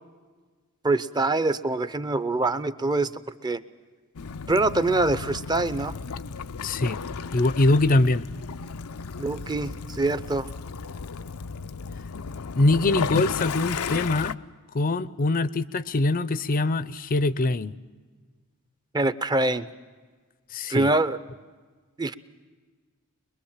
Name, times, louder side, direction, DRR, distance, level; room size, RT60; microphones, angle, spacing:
voice 1, 0.8-3.1 3.4-3.6 4.5-5.9 9.2-10.5 18.9-19.7 20.7-21.2 22.0-22.1, right 2 dB, 20° right, 14 dB, 0.7 m, -24 dB
Waves surf / Splash splatter / Trickle dribble, 4.2-14.3, left 5 dB, 80° left, 0.6 m, -34 dB
voice 2, 6.6-7.0 7.3-8.3 12.6-14.4 14.7-17.8 20.5-20.9, left 2 dB, 40° left, 16 dB, 0.6 m, -23 dB
23.5 x 22.0 x 7.4 m, 1.4 s
head